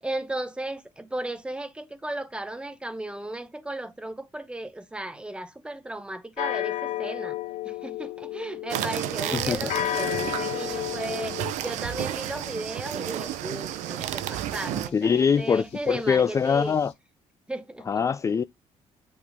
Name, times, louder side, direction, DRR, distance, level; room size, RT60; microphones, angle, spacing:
voice 1, 0.0-7.4 7.6-16.8 17.5-18.0, right 1 dB, 10° right, 1.0 m, -35 dB
sound 1, 6.4-11.5, left 15 dB, 75° left, 0.6 m, -32 dB
sound 2, 8.7-14.9, right 12 dB, 90° right, 0.7 m, -32 dB
voice 2, 9.3-9.7 14.9-16.9 17.9-18.4, left 6 dB, 25° left, 0.3 m, -23 dB
sound 3, 9.8-16.9, left 6 dB, 60° left, 2.6 m, -55 dB
8.6 x 3.6 x 3.6 m
cardioid pair, 115°, 12 cm